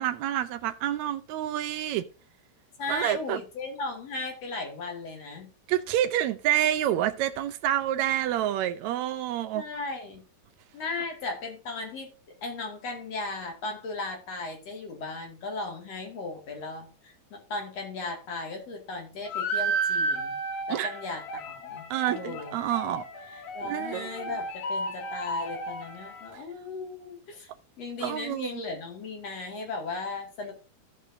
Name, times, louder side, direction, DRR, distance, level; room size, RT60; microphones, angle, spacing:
voice 1, 0.0-2.0 2.9-3.4 5.7-9.6 20.7-20.9 21.9-24.3 28.0-28.6, right 12 dB, 80° right, 1.6 m, -28 dB
voice 2, 2.8-5.5 9.5-10.2 10.7-12.1 12.4-20.4 20.7-22.6 23.5-27.5 27.8-30.5, left 3 dB, 50° left, 3.2 m, -36 dB
sound 1, 19.3-26.3, right 2 dB, 70° left, 3.1 m, -33 dB
15.5 x 5.5 x 2.7 m
omnidirectional pair, 3.9 m